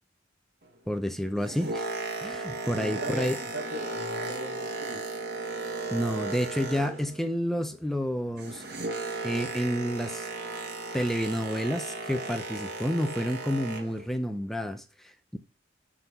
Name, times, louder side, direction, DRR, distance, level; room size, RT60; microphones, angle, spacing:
voice 1, 0.9-1.9 2.2-3.4 5.9-8.6 9.2-10.3 10.9-15.4, equal, ahead, 0.7 m, -30 dB
Boat Water vehicle, 1.2-7.3 7.6-14.0 14.7-14.8, right 2 dB, 60° right, 1.6 m, -35 dB
voice 2, 2.7-5.2, right 1 dB, 75° right, 1.8 m, -38 dB
6.2 x 5.9 x 6.8 m
head